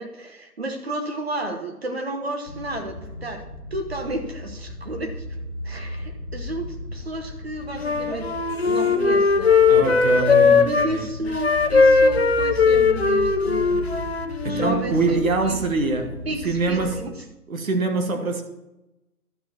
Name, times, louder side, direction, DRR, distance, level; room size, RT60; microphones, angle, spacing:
voice 1, 0.0-3.4 3.7-5.4 5.6-8.3 8.6-13.8 14.4-15.6 16.2-17.3, right 1 dB, 40° right, 1.0 m, -32 dB
sound 1, 2.4-17.0, left 2 dB, ahead, 1.0 m, -36 dB
Wind instrument woodwind instrument, 7.8-10.9 11.3-14.8, left 4 dB, 45° left, 0.7 m, -19 dB
voice 2, 9.7-11.1 14.4-17.0 17.5-18.4, right 3 dB, 60° right, 1.6 m, -24 dB
12.0 x 5.1 x 6.0 m
hypercardioid pair, 175°, 46 cm